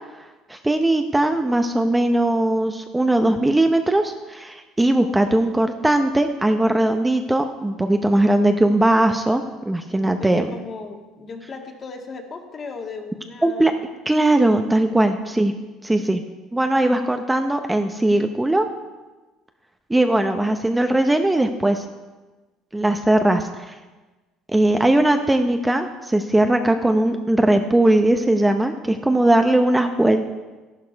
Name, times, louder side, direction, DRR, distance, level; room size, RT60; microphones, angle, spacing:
voice 1, 0.5-10.5 13.4-13.7 14.1-15.5 15.8-16.2 16.5-18.7 19.9-21.8 22.7-23.8 24.5-30.2, right 1 dB, 10° right, 6 dB, 0.8 m, -19 dB
voice 2, 9.9-13.8 14.8-15.1 24.8-25.4, left 4 dB, 35° left, 3 dB, 1.9 m, -37 dB
12.0 x 11.5 x 4.6 m, 1.2 s
supercardioid pair, 105°, 0 cm